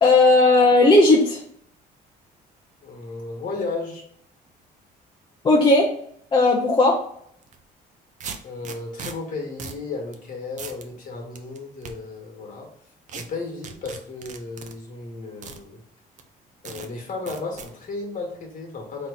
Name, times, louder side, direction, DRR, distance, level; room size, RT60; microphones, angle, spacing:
voice 1, 0.0-1.4 5.4-5.9 6.3-7.0, left 2 dB, 25° left, -1 dB, 0.7 m, -15 dB
voice 2, 2.8-4.0 8.4-12.7 13.1-15.8 16.6-19.1, left 3 dB, 50° left, 1 dB, 1.5 m, -34 dB
sound 1, 7.5-7.6 8.2-9.1 9.6-9.8 10.1-10.2 10.6-10.9 11.4-11.9 13.1-13.2 13.6-14.7 15.4-15.6 16.2-16.3 16.7-16.9 17.3-17.7, right 6 dB, 45° right, 0.6 m, -37 dB
3.8 x 3.0 x 3.8 m, 0.67 s
cardioid pair, 110°, 17 cm